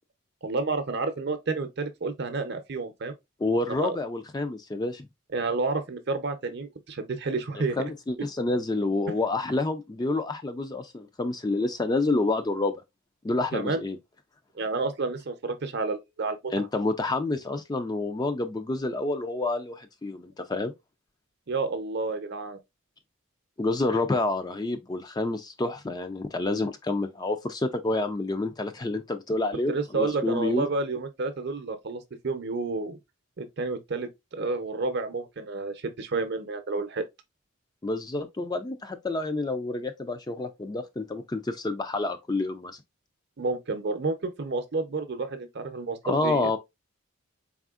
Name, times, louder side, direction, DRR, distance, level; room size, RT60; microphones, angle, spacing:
voice 1, 0.4-3.1 3.7-4.0 5.3-7.8 13.5-13.8 14.6-16.5 21.5-22.6 29.7-33.0 33.4-37.1 43.4-46.5, right 3 dB, 50° right, 0.7 m, -30 dB
voice 2, 3.4-5.1 7.8-12.8 13.2-14.0 16.5-20.7 23.6-30.7 37.8-42.7 46.0-46.6, left 2 dB, 20° left, 0.4 m, -28 dB
4.1 x 3.6 x 2.4 m
head